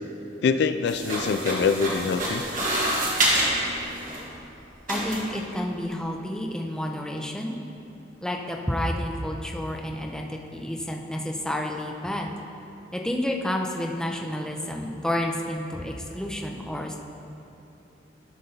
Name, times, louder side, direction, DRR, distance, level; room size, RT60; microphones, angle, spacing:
voice 1, 0.4-2.4, left 5 dB, 65° left, 10 dB, 0.3 m, -24 dB
sound 1, 0.9-4.2 4.9-5.4, right 1 dB, 50° right, 1.8 m, -27 dB
voice 2, 4.9-7.6 8.2-12.3 12.9-17.0, left 1 dB, 5° left, 0 dB, 0.6 m, -30 dB
12.5 x 5.5 x 3.9 m, 2.9 s
head